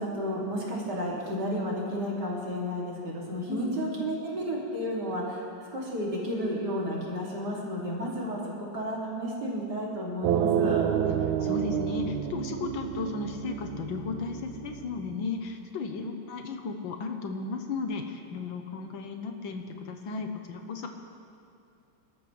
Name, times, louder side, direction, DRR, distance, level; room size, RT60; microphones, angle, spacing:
voice 1, 0.0-10.9, equal, 55° right, -5 dB, 3.5 m, -32 dB
voice 2, 3.5-4.1 11.1-20.9, left 4 dB, 75° left, 5 dB, 1.7 m, -35 dB
sound 1, 10.2-15.2, right 9 dB, 80° right, 1.5 m, -29 dB
26.0 x 13.0 x 3.4 m, 2.6 s
omnidirectional pair, 2.2 m